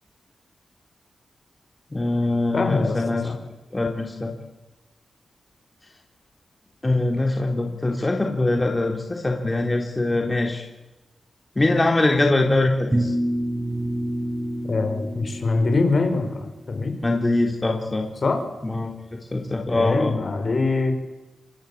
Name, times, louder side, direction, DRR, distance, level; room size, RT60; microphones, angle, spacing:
voice 1, 1.9-3.3 3.7-4.3 6.8-10.6 11.6-13.1 17.0-18.1 18.6-18.9 19.3-20.1, left 2 dB, 20° left, 2 dB, 3.7 m, -22 dB
voice 2, 2.5-3.4 14.6-17.0 18.2-18.4 19.7-20.9, left 3 dB, 45° left, 6 dB, 5.4 m, -23 dB
sound 1, 12.9-16.1, right 1 dB, 20° right, 3.3 m, -27 dB
28.0 x 23.5 x 8.7 m, 1.1 s
cardioid pair, 90°, 0 cm